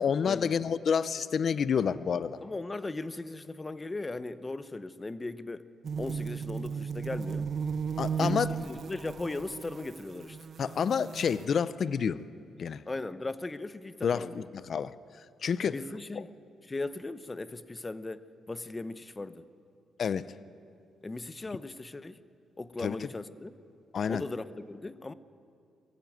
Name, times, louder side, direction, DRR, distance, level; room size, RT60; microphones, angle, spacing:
voice 1, 0.0-2.4 8.0-8.5 10.6-12.2 12.6-12.8 14.0-14.9 15.4-15.8 16.2-16.3 20.0-20.3 22.8-23.0 23.9-24.2, left 7 dB, 50° left, 15 dB, 0.6 m, -29 dB
voice 2, 2.4-5.6 6.0-7.5 8.2-10.4 12.9-14.5 15.6-16.3 16.7-19.4 21.0-22.2 22.6-23.5 24.1-25.1, left 2 dB, 20° left, 13 dB, 0.7 m, -38 dB
sound 1, 5.8-11.5, right 6 dB, 50° right, 0.6 m, -35 dB
22.0 x 15.0 x 9.4 m, 2.4 s
cardioid pair, 115°, 0 cm